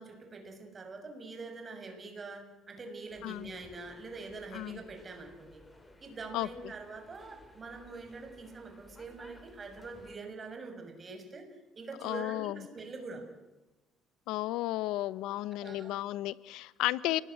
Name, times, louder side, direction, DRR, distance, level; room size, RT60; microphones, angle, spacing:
voice 1, 0.0-5.6 6.0-11.5 11.8-13.3 15.6-16.0, right 3 dB, 30° right, 5 dB, 6.2 m, -44 dB
sound 1, 3.1-10.2, left 1 dB, 10° left, 3.9 m, -57 dB
voice 2, 12.0-12.6 14.3-17.2, left 16 dB, 85° left, 18 dB, 0.9 m, -33 dB
29.0 x 20.0 x 9.9 m, 1.1 s
cardioid pair, 120°, 0 cm